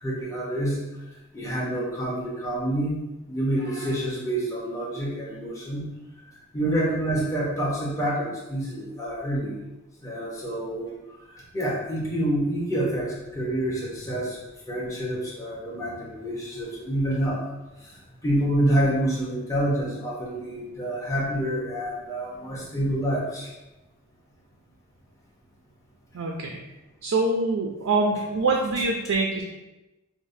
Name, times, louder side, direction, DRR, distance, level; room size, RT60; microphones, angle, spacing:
voice 1, 0.0-0.9 1.3-3.0 3.3-5.8 6.5-9.6 10.0-14.4 14.7-17.4 17.8-17.9 18.2-23.5, right 1 dB, 15° left, -4 dB, 0.8 m, -27 dB
voice 2, 26.1-26.6 27.0-29.4, right 3 dB, 65° right, 0 dB, 0.4 m, -24 dB
4.9 x 2.1 x 2.6 m, 1.0 s
head